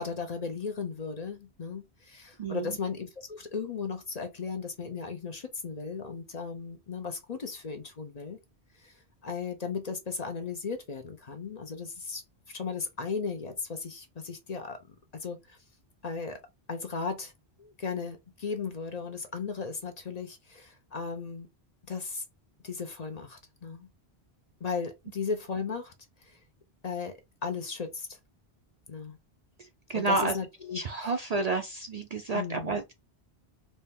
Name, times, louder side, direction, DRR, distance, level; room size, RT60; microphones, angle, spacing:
voice 1, 0.0-8.4 8.7-14.8 15.1-15.6 16.0-16.4 16.7-17.3 17.6-21.5 21.9-22.2 22.6-23.9 24.6-25.9 26.2-26.4 26.8-28.2 28.9-29.2 29.9-31.1 32.3-32.8, left 5 dB, 45° left, 0.7 m, -36 dB
voice 2, 2.4-2.8 29.6-30.4 30.7-32.9, right 3 dB, 55° right, 0.5 m, -30 dB
4.1 x 2.2 x 3.5 m
omnidirectional pair, 1.1 m